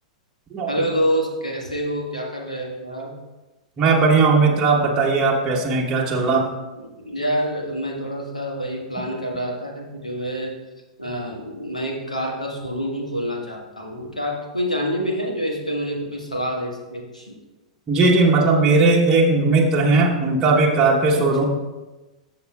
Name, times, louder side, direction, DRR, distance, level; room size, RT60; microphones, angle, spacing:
voice 1, 0.7-3.1 6.7-10.5 11.0-17.4 21.1-21.4, equal, 90° left, 0 dB, 1.5 m, -27 dB
voice 2, 3.8-6.5 17.9-21.4, right 3 dB, 20° right, -3 dB, 1.2 m, -17 dB
14.0 x 6.5 x 2.4 m, 1.1 s
figure-of-eight pair, 100°, 4 cm